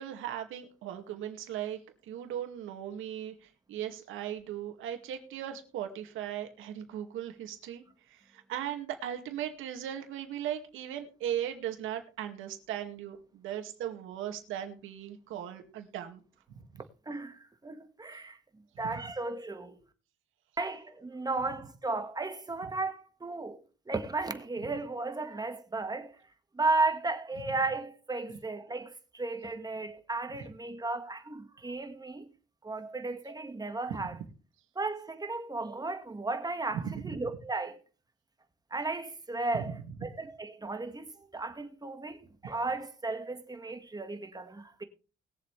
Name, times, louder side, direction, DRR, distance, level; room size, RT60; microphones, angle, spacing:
voice 1, 0.0-16.2 16.5-16.6 34.1-34.2 36.7-37.0, right 10 dB, 90° right, 2.2 m, -38 dB
voice 2, 17.1-18.4 18.8-19.8 20.6-23.6 23.9-26.2 26.5-32.3 32.6-34.1 34.8-37.8 38.7-44.8, right 3 dB, 20° right, 1.7 m, -34 dB
20.5 x 7.5 x 3.3 m
cardioid pair, 90°, 20 cm